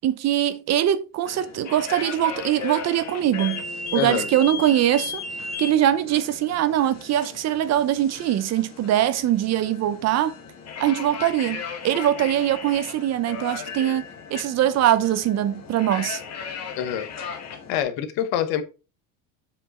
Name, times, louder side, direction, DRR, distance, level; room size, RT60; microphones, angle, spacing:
voice 1, 0.0-3.6 3.9-5.2 5.6-10.3 10.8-14.1 14.3-16.2, right 11 dB, 40° right, 0.7 m, -22 dB
sound 1, 1.2-17.8, left 5 dB, 45° left, 1.9 m, -36 dB
Bass guitar, 3.2-7.6, left 9 dB, 15° left, 2.2 m, -47 dB
voice 2, 3.9-4.3 16.8-17.1 17.7-18.6, left 10 dB, 75° left, 1.2 m, -25 dB
7.5 x 5.1 x 4.2 m
cardioid pair, 140°, 38 cm